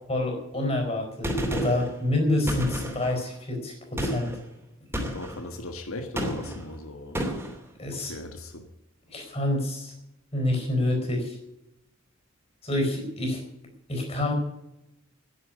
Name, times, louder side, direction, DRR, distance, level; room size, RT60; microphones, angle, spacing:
voice 1, 0.1-3.7 4.0-4.3 7.8-8.1 9.1-9.9 10.3-11.4 12.6-13.4 13.9-14.3, left 1 dB, 30° left, 2 dB, 4.6 m, -27 dB
Gunshot gunfire, 1.2-1.9 2.5-3.2 4.0-4.4 4.9-5.4 6.2-6.6 7.1-7.6, equal, 10° right, 2.8 m, -30 dB
voice 2, 5.1-7.2 7.9-8.6, left 2 dB, 90° left, 6 dB, 1.5 m, -38 dB
10.5 x 10.0 x 9.6 m, 0.89 s
head